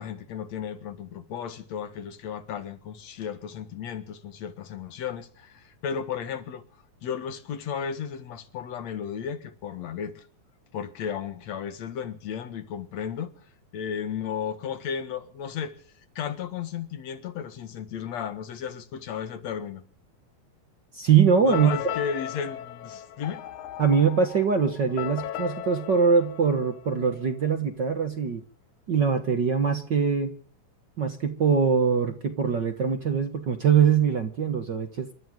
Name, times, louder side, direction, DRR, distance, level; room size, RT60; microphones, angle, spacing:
voice 1, 0.0-6.6 7.0-10.3 10.7-13.4 13.7-15.8 16.2-19.8 21.4-23.5, left 7 dB, 65° left, 2.7 m, -34 dB
voice 2, 20.9-21.9 23.8-28.4 28.9-30.3 31.0-35.1, right 6 dB, 45° right, 1.6 m, -23 dB
sound 1, 21.5-27.3, left 11 dB, 80° left, 2.6 m, -37 dB
28.5 x 13.5 x 3.8 m
omnidirectional pair, 3.4 m